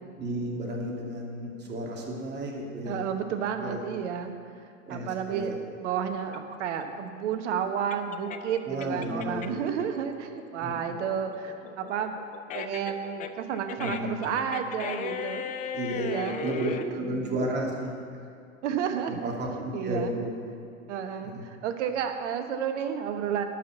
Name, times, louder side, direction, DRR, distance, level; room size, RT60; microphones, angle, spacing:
voice 1, 0.2-3.1 3.6-3.8 4.8-5.6 8.6-9.7 10.6-10.7 13.8-14.2 15.7-16.1 16.4-18.3 19.1-20.3 21.2-21.4, right 1 dB, 25° right, -2 dB, 2.7 m, -33 dB
voice 2, 2.9-4.3 4.9-12.1 12.5-15.4 15.9-16.9 18.6-19.3 19.7-20.2 20.9-23.4, right 8 dB, 60° right, 7 dB, 1.3 m, -31 dB
sound 1, 6.3-9.7 10.1-16.9, left 8 dB, 20° left, 0.5 m, -37 dB
12.0 x 6.0 x 8.1 m, 2.4 s
hypercardioid pair, 100°, 40 cm